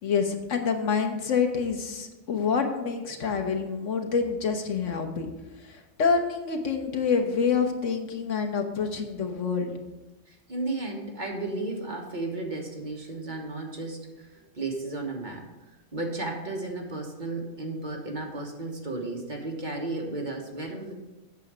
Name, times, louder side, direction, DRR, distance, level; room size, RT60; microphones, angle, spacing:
voice 1, 0.0-5.3 5.6-9.8, left 5 dB, 80° left, 4 dB, 1.3 m, -27 dB
voice 2, 10.3-20.9, right 2 dB, 40° right, 0 dB, 1.5 m, -34 dB
8.3 x 6.8 x 4.9 m, 1.1 s
omnidirectional pair, 1.3 m